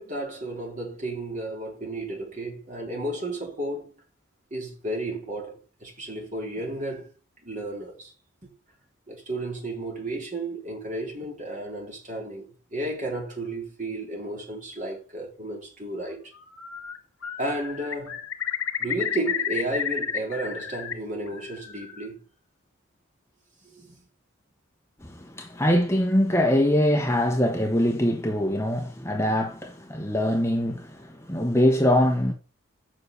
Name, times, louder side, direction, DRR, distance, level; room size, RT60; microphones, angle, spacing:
voice 1, 0.0-3.9 4.5-7.1 7.4-8.1 8.4-8.5 9.1-16.3 17.4-18.2 18.8-22.2 23.6-24.0, right 1 dB, 35° right, 3.5 m, -33 dB
Bird, 16.4-17.0 17.2-20.9 21.3-22.1, left 8 dB, 85° left, 2.2 m, -31 dB
voice 2, 25.0-32.3, equal, 15° left, 1.1 m, -23 dB
7.3 x 6.0 x 6.7 m
head